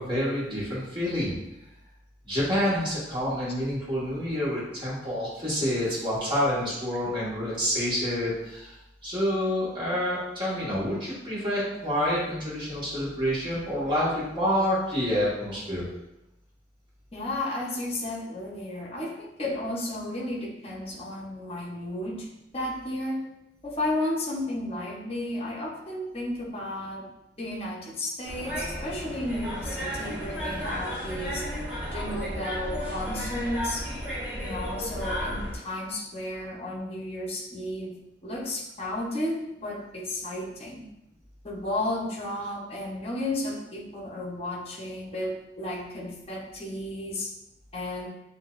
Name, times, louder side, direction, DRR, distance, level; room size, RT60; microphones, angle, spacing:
voice 1, 0.0-1.3 2.3-8.7 9.0-15.8, equal, 30° right, -8 dB, 1.6 m, -28 dB
voice 2, 17.1-22.3 22.5-23.3 23.6-27.0 27.4-31.5 31.9-33.9 34.3-40.8 41.4-47.3 47.7-48.1, left 1 dB, 35° left, -1 dB, 0.9 m, -33 dB
sound 1, 28.3-35.6, equal, 5° right, 1.1 m, -33 dB
7.1 x 2.7 x 2.5 m, 0.88 s
head